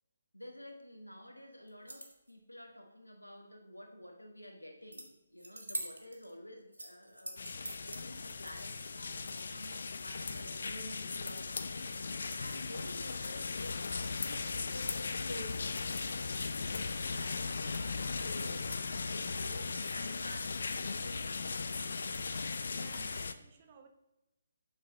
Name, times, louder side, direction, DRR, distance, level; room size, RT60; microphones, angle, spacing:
voice 1, 0.3-7.4 7.8-15.7 16.5-22.1, left 1 dB, 90° left, 4 dB, 1.3 m, -50 dB
sound 1, 1.7-2.3 4.9-5.1 5.4-6.3 6.7-8.0, right 1 dB, 80° right, 1.3 m, -43 dB
sound 2, 7.4-23.3, left 4 dB, 55° left, 0.5 m, -38 dB
voice 2, 22.7-23.9, right 6 dB, 30° right, 6 dB, 0.9 m, -58 dB
7.3 x 6.3 x 3.8 m, 0.96 s
figure-of-eight pair, 140°, 0 cm